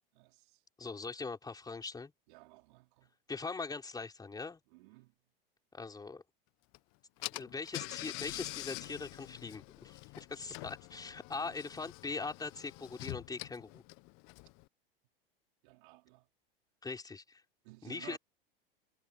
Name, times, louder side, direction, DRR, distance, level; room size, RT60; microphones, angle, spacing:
voice 1, 0.1-0.6 2.3-3.1 4.7-5.1 11.4-11.6 15.6-16.3 17.6-18.2, right 24 dB, 55° right, 4.9 m, -55 dB
voice 2, 0.8-2.1 3.3-4.6 5.7-6.2 7.3-13.8 16.8-17.4 17.8-18.2, left 4 dB, 15° left, 4.0 m, -41 dB
Car / Engine, 6.7-6.8 7.2-14.7, left 28 dB, 45° left, 1.3 m, -46 dB
hypercardioid pair, 95°, 29 cm